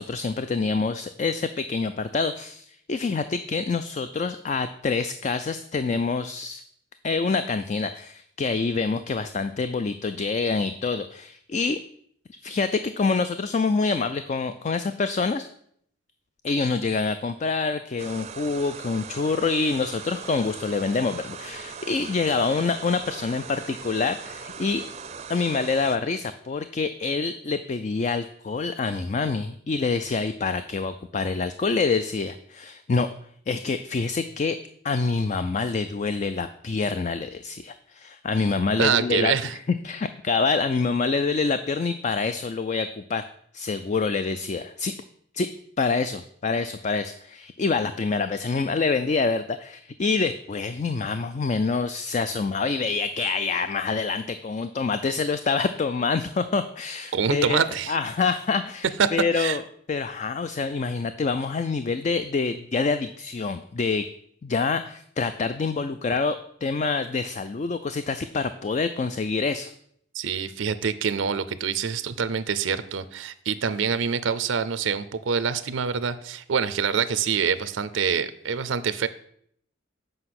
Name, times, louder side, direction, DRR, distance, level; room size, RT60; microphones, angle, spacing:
voice 1, 0.0-6.6 7.0-11.8 12.4-15.5 16.4-24.8 25.3-33.1 33.5-34.6 34.8-39.3 39.8-43.3 43.5-45.0 45.3-45.5 45.8-57.6 57.9-58.9 59.1-59.6 59.9-64.1 64.4-69.7, left 4 dB, 35° left, 11 dB, 0.3 m, -26 dB
sound 1, 18.0-26.0, right 6 dB, 35° right, 0.5 m, -40 dB
voice 2, 38.8-39.6 57.1-58.0 59.0-59.1 59.3-59.6 70.1-79.1, right 6 dB, 85° right, 14 dB, 0.5 m, -25 dB
7.8 x 5.3 x 5.9 m, 0.67 s
head